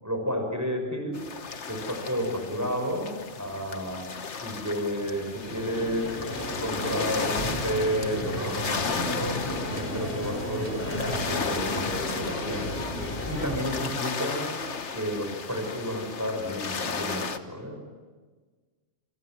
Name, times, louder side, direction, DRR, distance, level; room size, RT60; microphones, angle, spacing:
voice 1, 0.0-1.2 1.7-4.0 4.4-6.1 6.3-9.4 9.7-12.7 13.2-14.6 14.9-18.0, equal, 15° right, 4 dB, 6.1 m, -31 dB
sound 1, 1.1-17.4, left 5 dB, 70° left, 1.6 m, -35 dB
sound 2, 5.4-13.6, left 1 dB, 45° left, 5.0 m, -33 dB
28.0 x 27.0 x 7.8 m, 1.4 s
omnidirectional pair, 1.3 m